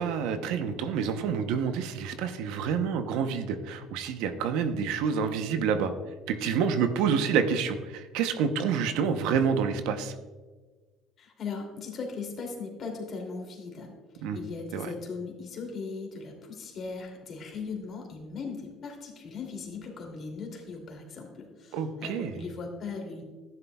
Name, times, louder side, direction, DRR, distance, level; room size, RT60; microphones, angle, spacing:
voice 1, 0.0-5.9 6.3-10.1 14.2-14.4 14.7-14.9 21.7-22.3, right 6 dB, 80° right, 9 dB, 0.8 m, -28 dB
voice 2, 11.2-23.2, left 4 dB, 45° left, 1 dB, 2.6 m, -38 dB
13.0 x 10.5 x 2.3 m, 1.3 s
supercardioid pair, 100°, 0 cm